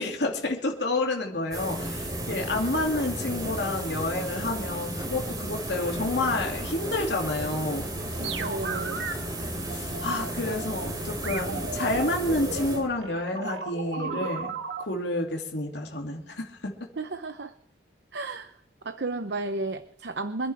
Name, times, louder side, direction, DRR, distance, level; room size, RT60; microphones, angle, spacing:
voice 1, 0.0-7.9 9.7-14.5 14.8-16.7, left 2 dB, 75° left, 1 dB, 2.6 m, -29 dB
sound 1, 1.5-13.1, right 1 dB, 20° right, 3.2 m, -34 dB
voice 2, 8.1-9.0 17.0-17.5 18.1-18.6 18.8-20.5, right 3 dB, 70° right, 10 dB, 0.8 m, -33 dB
sound 2, 8.1-9.1 9.7-10.9 11.2-14.8, right 4 dB, 85° right, 1.6 m, -35 dB
26.0 x 11.0 x 3.5 m, 0.76 s
head